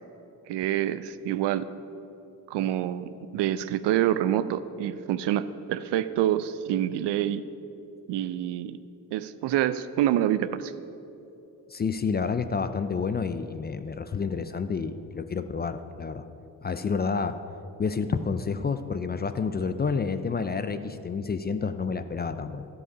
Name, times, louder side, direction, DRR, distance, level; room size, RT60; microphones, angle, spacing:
voice 1, 0.5-1.7 2.5-7.4 8.1-8.8 9.1-10.7, right 12 dB, 65° right, 14 dB, 0.5 m, -27 dB
voice 2, 11.7-16.3 16.6-17.4 17.8-22.7, left 5 dB, 25° left, 10 dB, 0.4 m, -29 dB
12.0 x 4.9 x 5.4 m, 3.0 s
hypercardioid pair, 45°, 45 cm